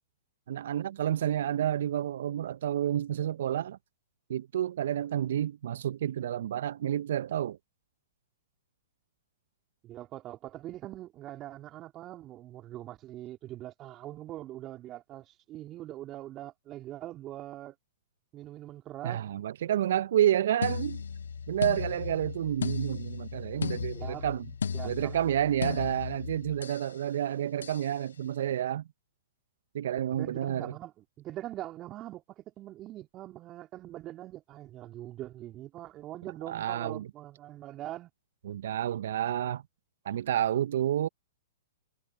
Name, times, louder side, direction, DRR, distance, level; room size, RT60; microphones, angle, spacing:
voice 1, 0.5-3.8 4.3-7.6 19.0-21.0 21.5-24.5 24.8-28.8 29.7-30.7 36.5-37.1 38.4-39.6 40.0-41.1, right 11 dB, 60° right, 1.1 m, -29 dB
voice 2, 9.8-17.8 18.3-19.2 23.9-24.3 24.7-25.2 30.2-38.1, right 14 dB, 30° right, 3.8 m, -42 dB
sound 1, 20.6-26.9 27.6-27.9, left 6 dB, 75° left, 1.0 m, -36 dB
figure-of-eight pair, 115°, 0 cm